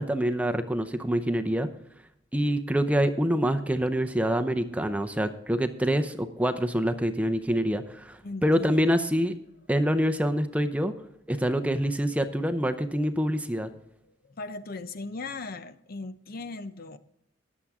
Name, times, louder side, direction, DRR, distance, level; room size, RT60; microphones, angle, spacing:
voice 1, 0.0-1.7 2.3-9.4 9.7-10.9 11.3-13.7, equal, 5° right, 8 dB, 0.6 m, -26 dB
voice 2, 8.2-9.0 14.2-17.0, left 3 dB, 50° left, 11 dB, 0.7 m, -38 dB
20.0 x 7.3 x 3.6 m, 0.79 s
head